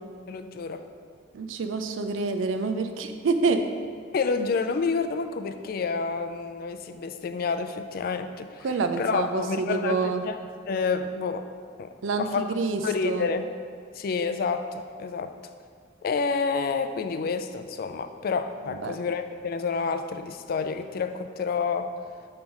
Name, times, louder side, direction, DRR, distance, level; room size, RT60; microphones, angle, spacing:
voice 1, 0.3-0.8 4.1-8.7 9.0-10.4 10.7-11.5 11.8-11.9 12.2-12.5 12.8-13.5 13.9-15.3 16.0-21.9, left 5 dB, 50° left, 9 dB, 0.3 m, -29 dB
voice 2, 1.3-3.6 8.6-10.2 12.0-13.3 18.7-19.0, right 4 dB, 90° right, 7 dB, 0.4 m, -27 dB
5.9 x 3.3 x 5.4 m, 2.2 s
head